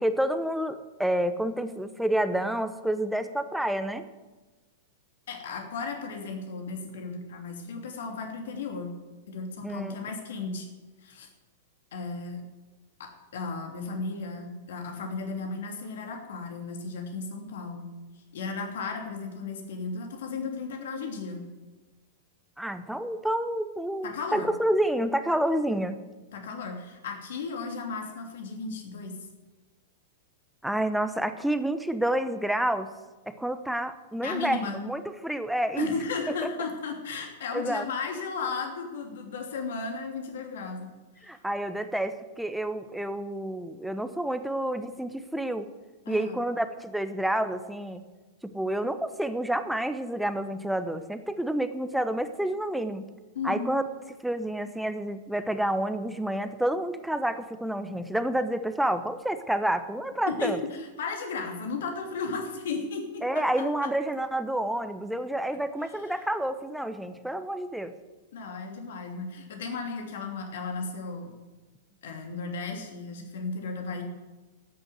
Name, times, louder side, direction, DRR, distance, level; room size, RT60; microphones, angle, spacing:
voice 1, 0.0-4.0 9.6-9.9 10.5-10.6 22.6-26.0 30.6-32.9 33.3-35.9 37.5-37.9 41.2-45.7 46.1-48.0 48.4-53.1 53.4-53.8 54.2-60.6 63.2-67.9 73.2-73.3, right 1 dB, ahead, 10 dB, 1.0 m, -29 dB
voice 2, 5.3-8.9 9.3-10.7 11.0-11.3 11.9-12.4 13.0-17.9 18.3-21.5 24.0-24.5 26.3-29.2 34.2-34.8 35.8-41.3 46.0-46.4 53.3-53.7 60.3-63.9 65.8-66.1 68.3-71.3 72.0-74.0, left 4 dB, 60° left, 3 dB, 2.9 m, -35 dB
13.0 x 9.4 x 7.9 m, 1.2 s
figure-of-eight pair, 95°, 0 cm